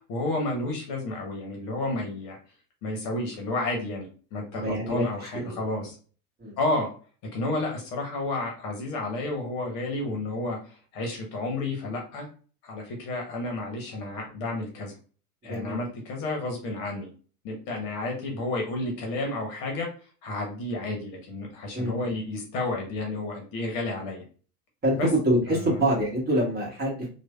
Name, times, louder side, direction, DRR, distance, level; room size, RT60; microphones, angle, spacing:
voice 1, 0.1-2.4 2.8-5.9 6.6-6.9 7.3-12.3 12.6-14.9 15.4-17.1 17.4-19.9 20.2-24.2 24.9-25.1 25.5-25.8, left 2 dB, 45° left, 1 dB, 1.0 m, -31 dB
voice 2, 4.5-5.0 5.3-5.6 6.4-6.5 15.5-15.8 21.7-22.1 24.8-25.0 25.2-27.1, equal, 20° right, -3 dB, 1.3 m, -26 dB
3.1 x 2.3 x 2.2 m, 0.39 s
figure-of-eight pair, 85°, 47 cm